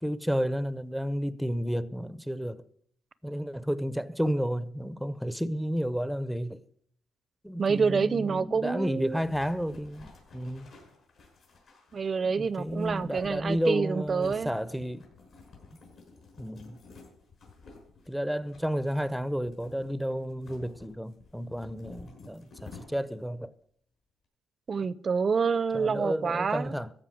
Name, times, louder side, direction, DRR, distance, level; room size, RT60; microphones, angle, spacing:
voice 1, 0.0-2.6 3.2-6.6 7.4-10.7 12.2-15.1 16.4-16.8 18.1-23.5 25.7-26.9, equal, ahead, 0.7 m, -31 dB
voice 2, 7.6-9.2 11.9-14.5 24.7-26.7, right 5 dB, 40° right, 0.6 m, -27 dB
sound 1, 9.0-23.3, left 3 dB, 65° left, 6.1 m, -52 dB
15.0 x 5.6 x 8.5 m
cardioid pair, 90°, 0 cm